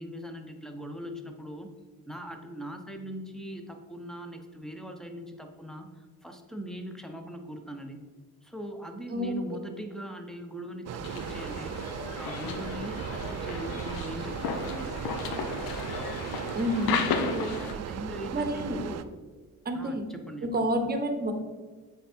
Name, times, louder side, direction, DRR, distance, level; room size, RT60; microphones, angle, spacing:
voice 1, 0.0-1.7 2.1-8.0 8.4-11.8 12.1-14.9 17.2-19.1 19.7-20.7, equal, ahead, 5 dB, 0.8 m, -40 dB
sound 1, 10.9-19.0, right 8 dB, 50° right, 0.4 m, -37 dB
sound 2, 11.0-17.7, left 5 dB, 90° left, 0.7 m, -34 dB
voice 2, 16.5-17.0 18.3-18.8 19.6-20.1 20.4-21.3, equal, 30° right, 6 dB, 0.9 m, -29 dB
8.0 x 3.6 x 4.4 m, 1.4 s
cardioid pair, 85°, 34 cm